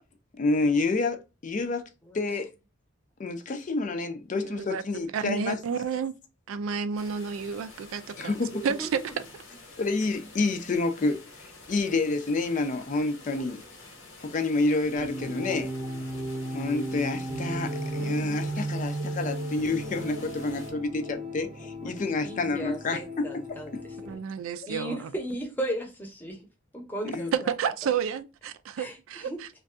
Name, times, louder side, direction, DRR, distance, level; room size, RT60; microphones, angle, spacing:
voice 1, 0.4-1.9 2.1-2.5 3.2-5.6 8.2-8.6 9.8-11.3 11.7-13.6 14.2-15.7 16.5-23.8 24.6-24.7 27.0-27.3, left 3 dB, 40° left, 0.4 m, -28 dB
voice 2, 4.4-6.1 6.5-8.3 8.6-9.3 13.4-13.5 18.0-18.3 24.1-25.1 27.3-29.5, right 6 dB, 85° right, 0.3 m, -31 dB
sound 1, 7.0-20.7, left 3 dB, 80° left, 1.1 m, -49 dB
voice 3, 8.5-8.9 21.8-24.1 24.7-26.4 26.7-27.3 28.8-28.9 29.3-29.4, right 1 dB, 10° left, 0.7 m, -36 dB
sound 2, 15.0-24.1, right 1 dB, 25° right, 0.7 m, -35 dB
2.5 x 2.3 x 3.5 m
head